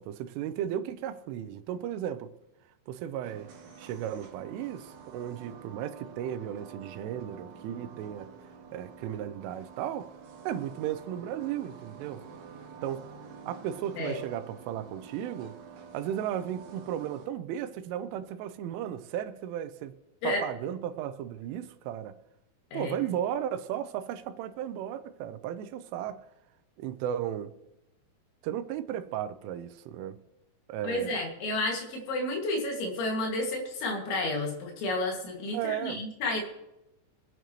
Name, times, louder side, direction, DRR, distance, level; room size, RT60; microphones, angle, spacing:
voice 1, 0.0-2.3 2.9-3.5 3.8-10.1 10.4-12.2 12.8-15.6 15.9-20.0 20.2-22.2 22.7-26.2 26.8-27.5 28.4-30.2 30.7-31.2 35.5-36.0, right 10 dB, 85° right, 3.1 m, -35 dB
sound 1, 3.2-17.3, right 6 dB, 70° right, 3.6 m, -49 dB
voice 2, 30.8-36.4, left 2 dB, 70° left, 4.4 m, -31 dB
24.5 x 9.2 x 3.1 m
omnidirectional pair, 5.6 m